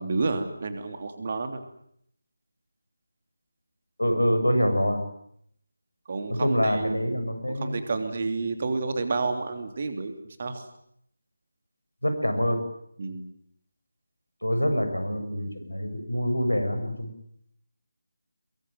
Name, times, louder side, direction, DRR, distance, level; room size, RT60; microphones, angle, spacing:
voice 1, 0.0-1.6 6.1-10.6 13.0-13.2, right 3 dB, 35° right, 7 dB, 3.2 m, -30 dB
voice 2, 4.0-5.0 6.4-7.8 12.0-12.6 14.4-17.1, equal, 80° left, 7 dB, 7.4 m, -25 dB
24.5 x 22.5 x 9.3 m, 0.71 s
figure-of-eight pair, 160°, 0 cm